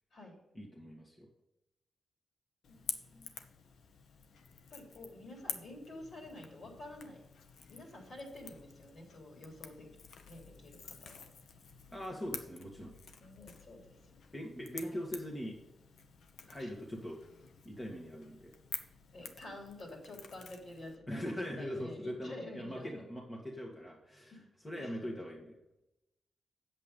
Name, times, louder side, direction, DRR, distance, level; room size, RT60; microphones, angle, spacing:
voice 1, 0.5-1.3 11.9-12.9 14.3-15.6 16.4-17.2 17.6-18.5 21.1-25.6, equal, 20° left, -1 dB, 1.6 m, -41 dB
Crackle / Crack, 2.6-21.0, left 5 dB, 85° left, 0.9 m, -49 dB
voice 2, 2.7-3.3 4.7-7.2 7.7-9.9 10.3-11.2 13.2-14.0 14.8-15.1 16.6-16.7 19.1-21.3 21.6-22.9 24.3-24.4 24.8-25.1, left 1 dB, 55° left, 0 dB, 3.7 m, -49 dB
8.3 x 7.6 x 5.3 m, 0.91 s
cardioid pair, 100°, 0 cm